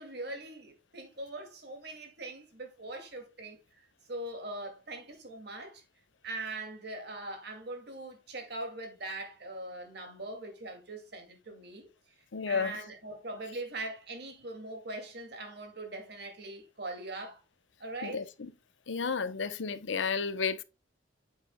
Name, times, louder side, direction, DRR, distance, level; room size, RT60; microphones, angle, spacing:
voice 1, 0.0-3.6 4.1-5.8 6.2-11.9 12.5-17.4 17.8-18.2, right 2 dB, 60° right, 2.3 m, -41 dB
voice 2, 12.3-12.7 18.0-18.5 18.9-20.6, left 5 dB, 85° left, 0.8 m, -32 dB
8.8 x 7.4 x 2.2 m
head